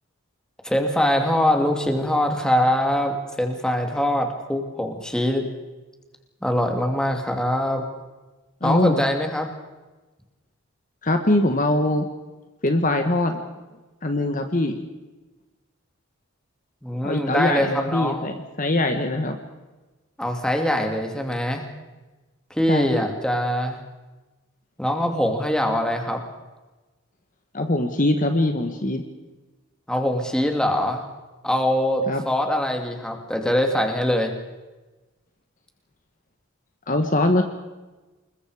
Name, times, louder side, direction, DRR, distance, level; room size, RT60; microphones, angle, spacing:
voice 1, 0.6-5.4 6.4-7.8 8.6-9.5 16.8-18.3 20.2-21.6 22.5-23.8 24.8-26.2 29.9-31.0 31.4-34.3, equal, 5° left, 3 dB, 2.5 m, -23 dB
voice 2, 8.6-9.0 11.0-12.1 12.6-13.4 14.0-14.8 17.0-19.4 22.7-23.1 27.5-29.0 32.1-32.2 36.9-37.4, left 1 dB, 35° left, 6 dB, 1.4 m, -22 dB
27.5 x 21.5 x 5.0 m, 1.2 s
head